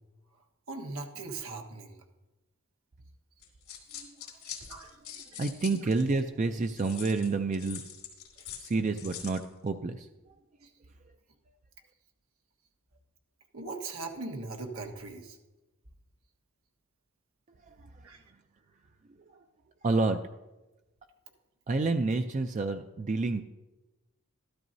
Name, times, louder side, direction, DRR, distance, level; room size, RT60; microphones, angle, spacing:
voice 1, 0.7-1.9 4.7-5.0 5.3-5.4 13.5-15.4 18.0-18.2, right 3 dB, 85° right, 3 dB, 1.4 m, -39 dB
sound 1, 3.4-6.2 6.8-9.5, left 9 dB, 85° left, 2.6 m, -44 dB
voice 2, 3.9-4.3 4.7-7.8 8.6-10.1 17.7-18.1 19.1-19.4 19.8-20.2 21.7-23.4, right 3 dB, 35° right, 7 dB, 0.4 m, -30 dB
13.5 x 12.5 x 2.7 m, 1.1 s
head